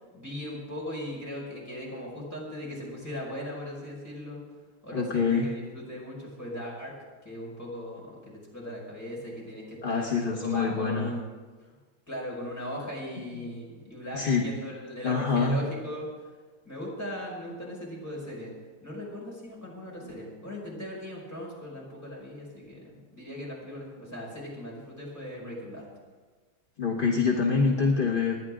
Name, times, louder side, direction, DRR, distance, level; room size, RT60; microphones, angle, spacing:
voice 1, 0.1-4.4 4.8-6.9 7.2-11.4 12.1-16.1 16.7-18.5 18.8-25.8, equal, 5° left, -5 dB, 5.4 m, -38 dB
voice 2, 4.9-5.5 9.8-11.1 13.3-13.4 14.1-14.5 15.0-15.6 26.8-28.4, left 5 dB, 35° left, 0 dB, 0.9 m, -25 dB
27.5 x 10.5 x 3.7 m, 1.4 s
omnidirectional pair, 2.2 m